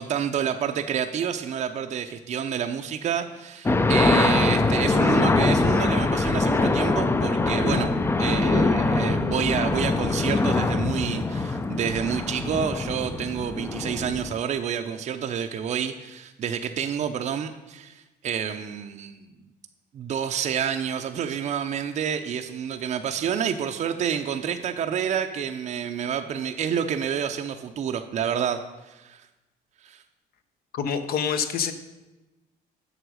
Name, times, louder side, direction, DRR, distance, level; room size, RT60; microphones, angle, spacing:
voice 1, 0.0-7.9 8.2-19.3 19.9-29.2 29.8-30.0, right 8 dB, 45° right, 5 dB, 0.5 m, -29 dB
sound 1, 3.7-14.4, left 3 dB, 15° left, 0.4 m, -23 dB
voice 2, 30.7-31.7, left 7 dB, 65° left, 10 dB, 0.9 m, -26 dB
8.0 x 6.0 x 6.3 m, 1.1 s
cardioid pair, 110°, 17 cm